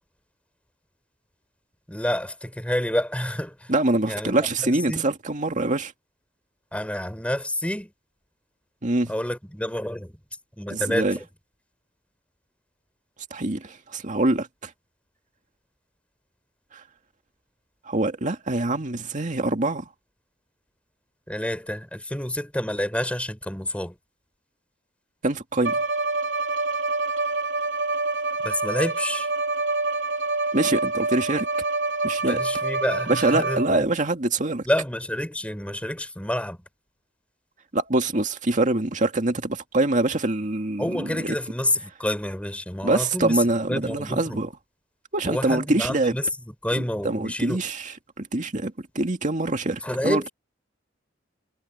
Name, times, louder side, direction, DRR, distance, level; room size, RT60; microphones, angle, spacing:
voice 1, 1.9-3.7 4.0-4.3 4.6-5.1 6.7-7.9 9.1-10.2 10.6-11.2 21.3-24.0 28.4-29.3 32.2-33.9 34.7-36.6 40.8-44.4 45.2-47.6 49.8-50.3, left 1 dB, 5° left, 5.6 m, -28 dB
voice 2, 3.7-5.9 8.8-9.1 10.7-11.2 13.3-14.7 16.7-16.8 17.9-19.9 25.2-25.8 30.5-31.5 32.0-32.4 33.1-34.7 37.7-41.3 42.8-44.5 45.1-46.1 47.0-47.9 48.2-50.3, right 2 dB, 40° right, 2.2 m, -24 dB
Bowed string instrument, 25.6-33.9, right 3 dB, 70° right, 4.2 m, -26 dB
head